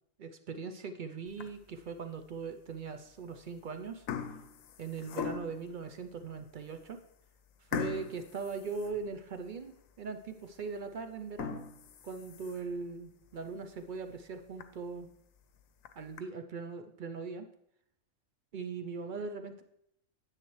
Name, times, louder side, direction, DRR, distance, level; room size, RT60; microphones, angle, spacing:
voice 1, 0.2-4.1 4.8-7.0 7.7-9.7 10.0-11.6 12.0-15.1 16.0-17.5 18.5-19.6, right 5 dB, 55° right, 7 dB, 0.5 m, -40 dB
sound 1, 1.3-1.8 2.4-2.5 3.3-3.6 3.8-5.7 6.3-6.4 6.8-6.9 7.7-9.5 9.9-10.0 10.5-10.6 11.2-12.8 13.3-13.4 13.8-13.9 14.2-14.3 14.6-14.7 15.6-16.2, left 8 dB, 85° left, 1.0 m, -40 dB
9.9 x 7.5 x 3.1 m, 0.74 s
omnidirectional pair, 1.4 m